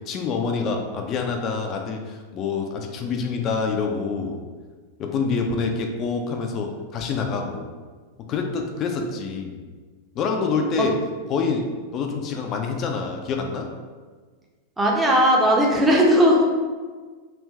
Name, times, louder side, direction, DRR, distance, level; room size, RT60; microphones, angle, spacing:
voice 1, 0.1-4.4 5.0-7.7 8.3-9.6 10.1-11.0 11.3-13.7, left 5 dB, 35° left, 3 dB, 0.4 m, -26 dB
voice 2, 14.8-16.6, equal, 10° right, -2 dB, 0.7 m, -17 dB
3.5 x 2.5 x 3.1 m, 1.4 s
figure-of-eight pair, 90°, 0 cm